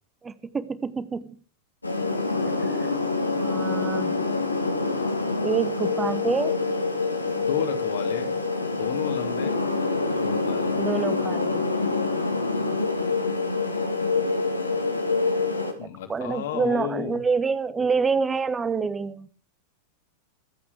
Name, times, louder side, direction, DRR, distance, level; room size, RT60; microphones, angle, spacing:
voice 1, 0.2-1.4 2.6-2.9 3.4-4.2 5.4-6.6 10.8-11.6 15.6-15.7 16.1-19.3, right 5 dB, 15° right, 15 dB, 1.2 m, -27 dB
sound 1, 1.8-15.7, left 3 dB, 85° left, 2.5 m, -26 dB
voice 2, 7.3-8.4 8.7-9.6 9.9-10.8 15.8-17.2, left 9 dB, 60° left, 6 dB, 2.8 m, -33 dB
24.0 x 8.6 x 4.9 m, 0.41 s
figure-of-eight pair, 90°, 0 cm